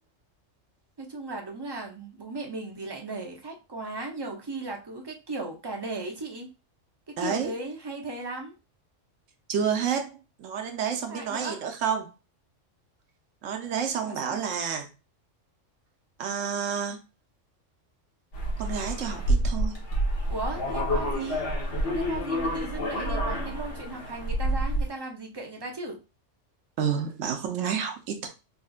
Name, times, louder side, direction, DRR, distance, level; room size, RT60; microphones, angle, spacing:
voice 1, 1.0-6.5 7.1-8.5 11.1-11.6 14.0-14.4 20.3-21.4 21.9-26.0, right 2 dB, 25° right, 2 dB, 0.6 m, -36 dB
voice 2, 7.2-7.5 9.5-12.1 13.4-14.9 16.2-17.0 18.6-19.7 26.8-28.3, right 7 dB, 85° right, 5 dB, 1.1 m, -29 dB
sound 1, 18.3-24.9, equal, 70° left, 1.5 m, -28 dB
4.2 x 3.3 x 2.4 m, 0.29 s
omnidirectional pair, 1.3 m